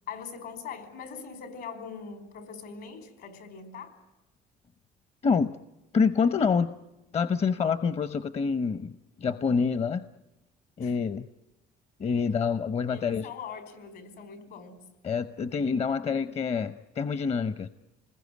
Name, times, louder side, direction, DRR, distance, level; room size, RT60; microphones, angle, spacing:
voice 1, 0.1-4.0 10.8-11.0 12.9-14.8, left 6 dB, 75° left, 9 dB, 5.0 m, -42 dB
voice 2, 5.9-6.7 7.1-10.0 10.8-11.3 12.0-13.3 15.0-17.7, left 5 dB, 40° left, 14 dB, 0.9 m, -27 dB
27.5 x 21.0 x 9.4 m, 0.97 s
cardioid pair, 110°, 17 cm